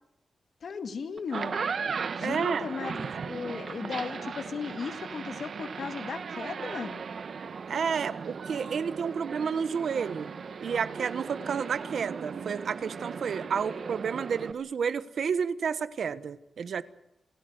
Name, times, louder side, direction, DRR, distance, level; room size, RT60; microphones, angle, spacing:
voice 1, 0.6-1.7 2.2-7.0, left 5 dB, 65° left, 8 dB, 1.9 m, -36 dB
sound 1, 1.2-14.5, right 5 dB, 60° right, 1.2 m, -37 dB
voice 2, 2.2-2.7 7.7-10.3 10.6-16.8, right 6 dB, 80° right, 13 dB, 1.2 m, -31 dB
28.0 x 18.0 x 8.0 m, 0.83 s
wide cardioid pair, 170°, 0 cm